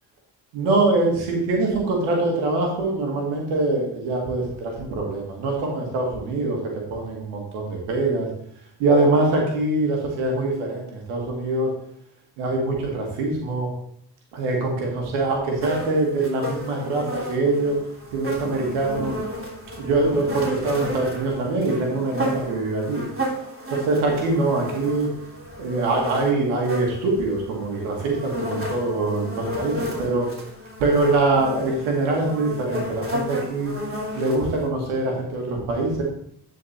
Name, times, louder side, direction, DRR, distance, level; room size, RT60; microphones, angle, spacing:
voice 1, 0.5-8.3 8.8-11.7 12.4-13.7 14.3-17.8 18.1-19.1 19.8-23.0 23.7-25.1 25.6-29.7 30.0-30.3 30.8-33.7 34.1-36.0, right 2 dB, 85° right, 0 dB, 1.9 m, -23 dB
sound 1, 15.6-34.7, equal, 25° right, 3.0 m, -33 dB
9.8 x 4.6 x 4.3 m, 0.68 s
hypercardioid pair, 50°, 48 cm